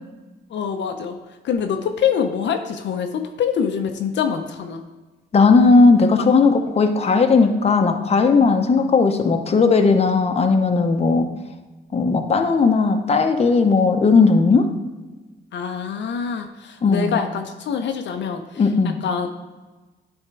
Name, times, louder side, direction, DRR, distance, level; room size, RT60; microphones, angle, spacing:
voice 1, 0.5-1.2 1.4-4.8 15.5-18.4 19.0-19.4, left 7 dB, 65° left, 5 dB, 0.6 m, -25 dB
voice 2, 5.3-11.3 11.9-14.7 16.8-17.2 18.6-19.0, left 4 dB, 30° left, 6 dB, 0.7 m, -16 dB
9.8 x 3.6 x 4.7 m, 1.2 s
cardioid pair, 90°, 20 cm